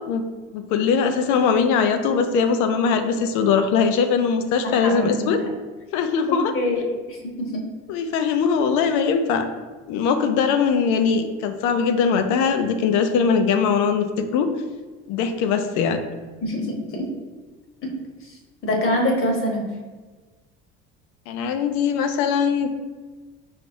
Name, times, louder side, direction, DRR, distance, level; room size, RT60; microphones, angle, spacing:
voice 1, 0.5-5.4 5.9-6.5 7.9-9.5 9.9-14.1 14.3-14.5 15.1-16.0 21.3-22.7, left 6 dB, 70° left, 8 dB, 0.5 m, -21 dB
voice 2, 4.6-5.5 6.3-7.6 16.4-17.1 17.8-18.0 18.2-19.7, left 1 dB, 45° left, 0 dB, 1.1 m, -25 dB
4.9 x 3.0 x 2.6 m, 1.3 s
supercardioid pair, 85°, 30 cm